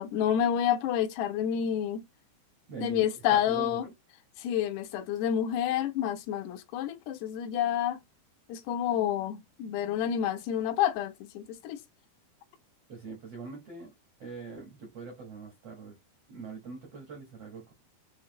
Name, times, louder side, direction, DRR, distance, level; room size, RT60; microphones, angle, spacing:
voice 1, 0.0-2.0 2.8-3.8 4.4-8.0 8.5-11.8, left 9 dB, 80° left, 2.7 m, -29 dB
voice 2, 2.7-3.9 12.9-13.9 14.2-16.0 16.3-17.7, right 4 dB, 80° right, 1.3 m, -42 dB
7.2 x 2.6 x 2.8 m
omnidirectional pair, 4.8 m